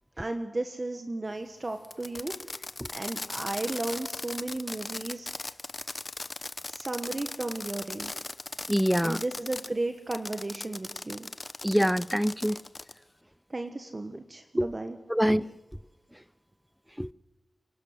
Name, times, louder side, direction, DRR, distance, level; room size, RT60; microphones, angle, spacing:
voice 1, 0.2-2.3 2.9-5.3 6.7-8.1 9.0-11.3 13.5-15.0, right 2 dB, 40° right, 1.4 m, -34 dB
Fireworks, 1.8-9.7 10.1-13.0, left 2 dB, 35° left, 0.9 m, -38 dB
voice 2, 8.7-9.2 11.6-12.6 14.6-14.7 15.1-15.5 17.0-17.1, equal, ahead, 0.7 m, -25 dB
28.0 x 12.0 x 7.9 m
cardioid pair, 55°, 0 cm